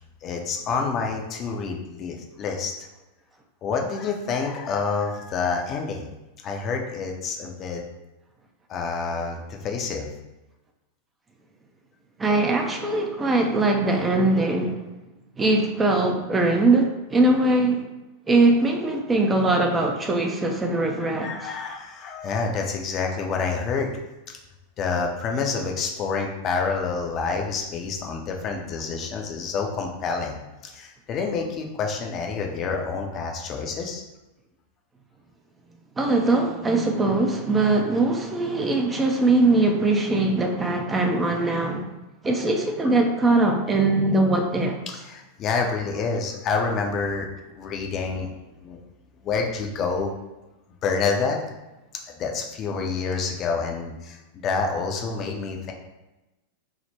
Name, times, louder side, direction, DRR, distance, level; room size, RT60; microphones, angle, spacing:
voice 1, 0.2-2.7 3.6-6.1 6.4-7.8 8.7-10.1 21.0-23.9 24.8-30.4 30.6-34.0 45.1-47.3 47.5-48.3 48.6-48.8 49.2-50.1 50.8-51.4 52.2-55.7, left 4 dB, 35° left, 2 dB, 0.5 m, -28 dB
voice 2, 12.2-14.8 15.4-17.9 18.3-21.3 36.0-41.9 42.2-44.8, right 2 dB, 15° right, 3 dB, 0.4 m, -21 dB
3.5 x 2.1 x 4.3 m, 1.0 s
figure-of-eight pair, 90°, 0 cm